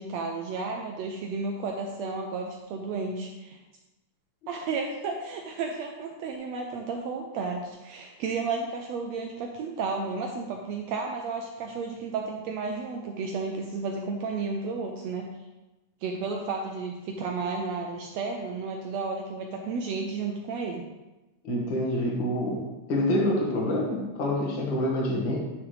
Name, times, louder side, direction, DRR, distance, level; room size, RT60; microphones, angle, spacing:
voice 1, 0.0-3.6 4.5-15.3 16.0-20.9, right 4 dB, 85° right, 2 dB, 1.5 m, -32 dB
voice 2, 21.4-22.6 22.9-25.4, left 1 dB, 45° left, -2 dB, 1.8 m, -26 dB
10.5 x 6.0 x 3.3 m, 1.1 s
omnidirectional pair, 3.7 m